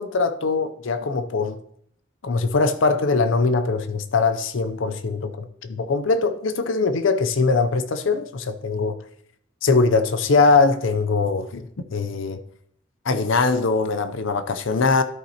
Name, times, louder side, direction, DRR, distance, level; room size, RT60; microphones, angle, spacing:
voice 1, 0.0-1.6 2.2-9.0 9.6-11.7 11.9-12.4 13.1-15.0, left 4 dB, 75° left, 0.5 m, -21 dB
13.0 x 5.5 x 2.9 m
head